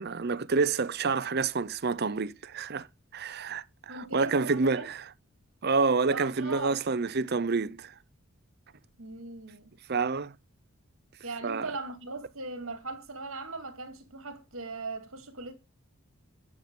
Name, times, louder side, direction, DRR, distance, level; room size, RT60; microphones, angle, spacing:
voice 1, 0.0-2.9 3.1-5.0 5.6-7.9 9.9-10.3 11.4-11.7, right 4 dB, 45° right, 0.6 m, -28 dB
voice 2, 3.9-4.9 6.1-6.8 9.0-9.7 11.2-15.5, right 3 dB, 65° right, 2.4 m, -39 dB
9.7 x 7.1 x 3.8 m
head